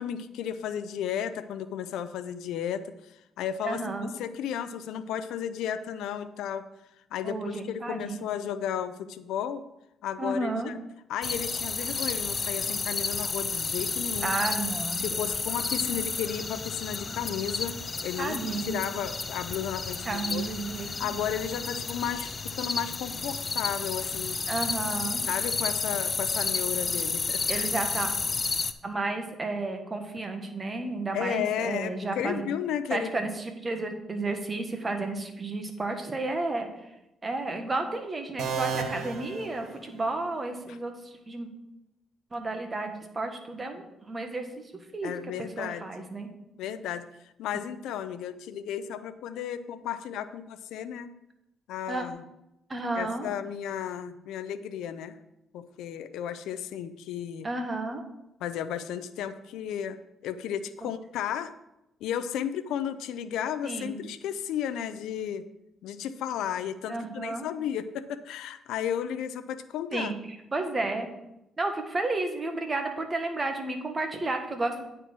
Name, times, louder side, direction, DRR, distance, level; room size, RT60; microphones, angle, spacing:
voice 1, 0.0-6.7 7.1-9.6 10.0-10.8 11.1-14.4 15.0-20.4 20.8-24.4 25.3-27.7 31.1-33.2 40.7-40.8 45.0-46.1 46.6-51.1 51.7-52.2 53.0-55.2 55.5-57.5 58.4-61.5 62.0-65.4 65.8-70.1, left 9 dB, 85° left, 11 dB, 0.5 m, -34 dB
voice 2, 3.6-4.1 7.2-8.2 10.2-10.7 14.2-15.2 15.8-15.9 18.2-18.8 20.0-21.2 24.5-25.2 27.5-28.1 28.8-32.5 32.9-36.9 37.2-41.5 42.3-44.5 44.7-46.3 51.9-52.0 52.7-53.3 57.4-58.0 60.8-60.9 63.6-64.0 66.9-67.5 69.9-71.1 71.6-74.8, right 2 dB, 30° right, 5 dB, 1.4 m, -32 dB
sound 1, 11.2-28.7, left 4 dB, 35° left, 0.5 m, -31 dB
sound 2, 38.4-40.3, right 6 dB, 85° right, 1.0 m, -34 dB
9.2 x 4.4 x 6.0 m, 0.87 s
cardioid pair, 90°, 0 cm